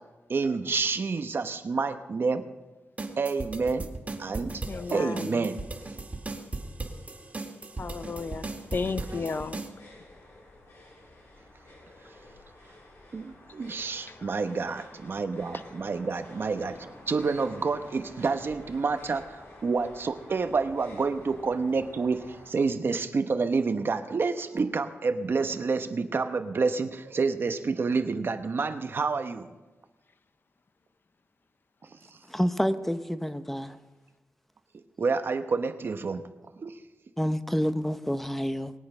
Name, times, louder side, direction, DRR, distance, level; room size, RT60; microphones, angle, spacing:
voice 1, 0.3-2.5 3.2-3.9 4.2-4.5 4.9-5.6 9.1-9.2 13.1-29.5 35.0-36.3 36.6-36.8, right 4 dB, 55° right, 1.0 m, -28 dB
sound 1, 3.0-9.7, right 2 dB, 35° right, 2.1 m, -37 dB
voice 2, 4.3-5.5 7.8-8.5 8.7-9.6 14.1-14.3, left 4 dB, 50° left, 0.6 m, -34 dB
sound 2, 8.0-22.5, left 1 dB, 75° left, 4.6 m, -50 dB
voice 3, 32.3-33.8 37.2-38.7, equal, 5° left, 0.8 m, -28 dB
22.0 x 8.5 x 5.6 m
wide cardioid pair, 85°, 5 cm